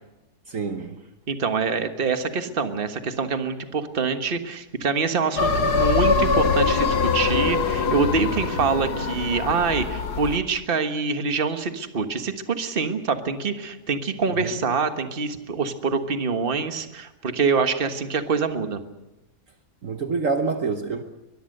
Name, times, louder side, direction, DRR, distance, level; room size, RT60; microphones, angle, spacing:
voice 1, 0.5-1.0 14.4-14.5 19.8-21.0, right 4 dB, 55° right, 6 dB, 1.5 m, -26 dB
voice 2, 1.3-18.8, right 5 dB, 35° right, 7 dB, 1.5 m, -25 dB
sound 1, 5.4-10.4, left 4 dB, 80° left, 2.0 m, -23 dB
23.0 x 21.5 x 6.7 m, 1.0 s
omnidirectional pair, 1.7 m